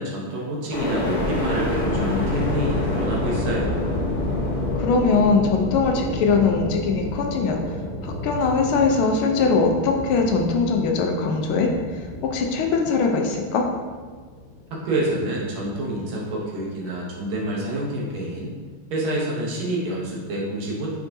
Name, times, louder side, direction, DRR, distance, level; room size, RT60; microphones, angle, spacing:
voice 1, 0.0-3.9 14.7-18.5 18.9-21.0, right 1 dB, 75° right, -4 dB, 1.8 m, -28 dB
sound 1, 0.7-14.7 15.2-15.9, left 1 dB, 50° left, 1.5 m, -28 dB
voice 2, 4.7-7.6 8.0-13.7, left 4 dB, 80° left, 2 dB, 1.4 m, -21 dB
5.4 x 3.5 x 2.6 m, 1.5 s
omnidirectional pair, 2.4 m